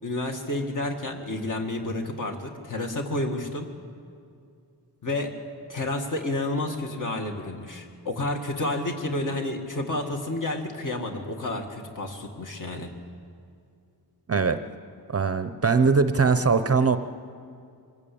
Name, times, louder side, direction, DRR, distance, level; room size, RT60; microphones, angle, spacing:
voice 1, 0.0-3.7 5.0-5.3 5.7-12.9, left 2 dB, 45° left, 3 dB, 1.9 m, -30 dB
voice 2, 14.3-14.6 15.1-17.0, right 4 dB, 35° right, 10 dB, 0.6 m, -21 dB
24.0 x 14.5 x 8.5 m, 2.4 s
wide cardioid pair, 180°, 42 cm